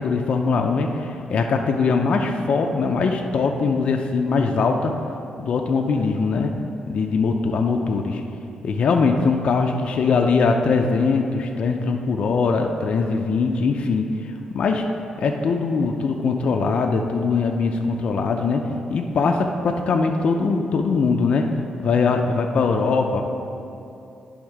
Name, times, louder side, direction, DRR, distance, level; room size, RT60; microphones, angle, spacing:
voice 1, 0.0-4.9 5.4-6.5 6.9-8.2 8.6-14.9 15.2-18.6 18.9-21.4 21.8-23.2, left 4 dB, 55° left, 3 dB, 0.4 m, -21 dB
10.5 x 3.5 x 4.7 m, 2.8 s
cardioid pair, 120°, 2 cm